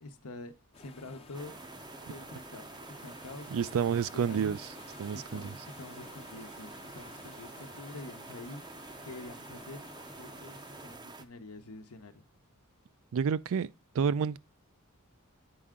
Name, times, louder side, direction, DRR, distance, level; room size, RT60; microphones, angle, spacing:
voice 1, 0.0-1.7 2.1-3.8 4.1-4.6 5.1-8.6 9.0-9.9 10.2-12.2, left 2 dB, 70° left, 1.0 m, -47 dB
sound 1, 0.7-11.0, left 3 dB, 25° left, 0.7 m, -53 dB
sound 2, 1.3-11.2, right 3 dB, 20° right, 0.6 m, -48 dB
voice 2, 3.5-4.6 5.0-5.5 13.1-13.7 13.9-14.4, right 7 dB, 65° right, 0.4 m, -29 dB
8.6 x 4.6 x 3.6 m
head